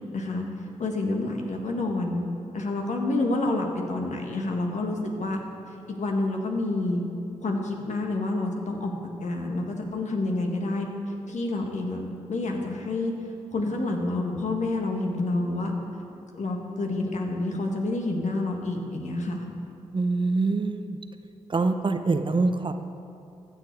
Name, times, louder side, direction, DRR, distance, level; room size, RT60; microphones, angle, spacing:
voice 1, 0.1-0.4 0.8-2.2 2.5-5.4 5.9-7.0 7.4-10.9 11.3-12.0 12.3-13.1 13.5-15.7 16.3-19.4, left 2 dB, 60° left, 2 dB, 1.6 m, -28 dB
voice 2, 19.9-21.0 21.5-22.7, right 3 dB, 40° right, 8 dB, 0.7 m, -24 dB
15.0 x 6.9 x 4.6 m, 2.6 s
supercardioid pair, 40°, 13 cm